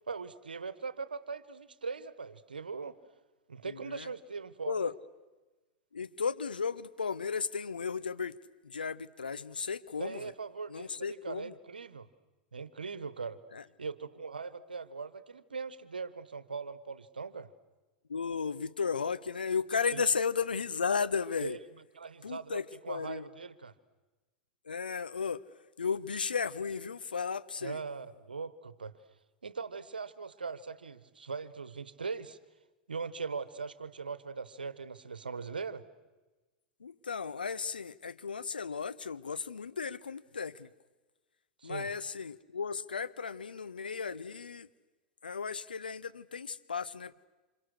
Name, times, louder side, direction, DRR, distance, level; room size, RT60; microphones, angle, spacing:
voice 1, 0.1-3.0 3.5-4.9 10.0-12.1 12.5-13.4 13.8-17.5 19.9-20.0 21.4-21.6 21.9-23.7 27.6-28.9 29.4-32.4 32.9-35.8 41.6-41.9, right 5 dB, 85° right, 15 dB, 1.3 m, -40 dB
voice 2, 3.6-4.1 4.6-4.9 5.9-8.4 8.6-10.3 10.7-11.5 13.5-13.6 18.1-21.6 22.2-23.3 24.6-25.4 25.8-27.8 36.8-40.7 41.6-44.7 45.2-47.1, left 5 dB, 85° left, 14 dB, 0.8 m, -34 dB
28.5 x 26.5 x 6.5 m, 1.2 s
hypercardioid pair, 95°, 5 cm